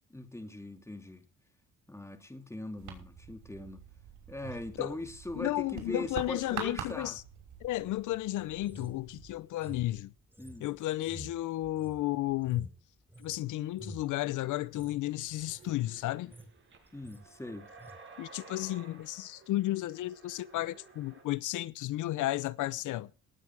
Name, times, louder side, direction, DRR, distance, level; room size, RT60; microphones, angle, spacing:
voice 1, 0.1-1.2 1.9-3.9 4.3-7.2 10.4-10.7 16.9-17.7, left 1 dB, 10° left, 2.8 m, -41 dB
sound 1, 2.8-9.3, right 8 dB, 80° right, 6.0 m, -46 dB
voice 2, 5.4-7.2 7.6-10.1 10.6-12.7 13.2-16.3 18.2-23.1, left 16 dB, 80° left, 0.7 m, -33 dB
sound 2, 8.6-13.4 13.7-14.1 14.6-15.0 15.3-15.7 16.1-16.6 16.9-17.3 17.8-18.0, right 1 dB, 5° right, 3.8 m, -49 dB
sound 3, 15.2-21.2, right 4 dB, 40° right, 7.6 m, -55 dB
19.0 x 8.9 x 4.7 m
cardioid pair, 90°, 30 cm